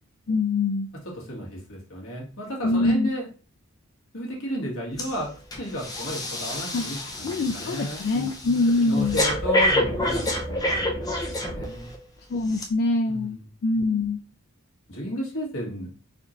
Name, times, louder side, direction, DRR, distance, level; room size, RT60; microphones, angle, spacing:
voice 1, 0.3-0.9 2.6-3.1 6.7-6.9 7.2-9.2 12.3-14.2, left 3 dB, 45° left, 5 dB, 0.3 m, -24 dB
voice 2, 1.1-3.3 4.1-5.3 5.6-8.3 8.8-11.1 11.5-11.9 13.1-13.5 14.9-15.9, left 1 dB, 65° left, -2 dB, 1.5 m, -33 dB
Breathing, 5.0-5.2 5.5-12.0 12.5-12.6, left 1 dB, 15° left, 0.7 m, -28 dB
4.2 x 3.1 x 2.6 m, 0.36 s
head